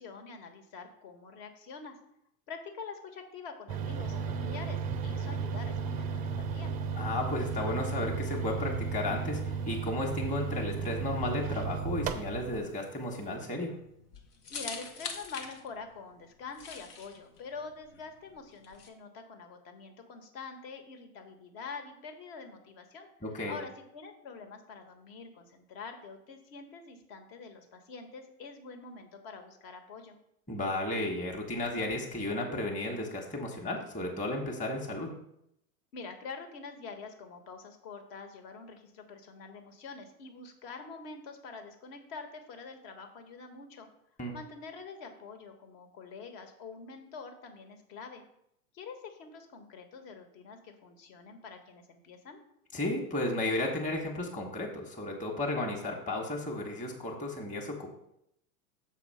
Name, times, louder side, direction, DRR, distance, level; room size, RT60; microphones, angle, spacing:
voice 1, 0.0-1.9 2.5-6.7 14.5-23.1 23.3-30.2 35.9-43.9 44.3-48.2 48.7-52.4, left 4 dB, 55° left, 5 dB, 1.5 m, -46 dB
sound 1, 3.7-12.6, right 5 dB, 20° right, 0.3 m, -34 dB
voice 2, 6.9-13.7 23.2-23.6 30.5-35.1 44.2-44.3 52.7-57.9, left 1 dB, 15° left, 0 dB, 1.2 m, -33 dB
sound 2, 12.3-18.9, left 5 dB, 85° left, 1.2 m, -45 dB
6.9 x 4.2 x 5.6 m, 0.77 s
hypercardioid pair, 120°, 45 cm